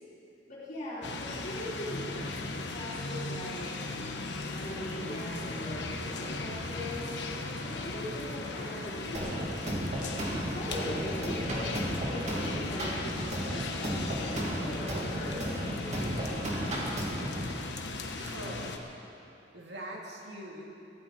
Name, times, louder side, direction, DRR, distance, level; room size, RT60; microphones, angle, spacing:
voice 1, 0.5-3.8 4.5-7.2 7.5-9.6 10.5-16.5, left 1 dB, 50° left, -8 dB, 3.9 m, -41 dB
sound 1, 1.0-18.8, left 3 dB, 75° left, 1.2 m, -37 dB
sound 2, 9.1-17.5, right 1 dB, 40° right, 2.6 m, -34 dB
voice 2, 18.2-18.8 19.5-20.7, right 1 dB, 70° right, -1 dB, 2.6 m, -42 dB
22.0 x 15.0 x 4.4 m, 2.8 s
head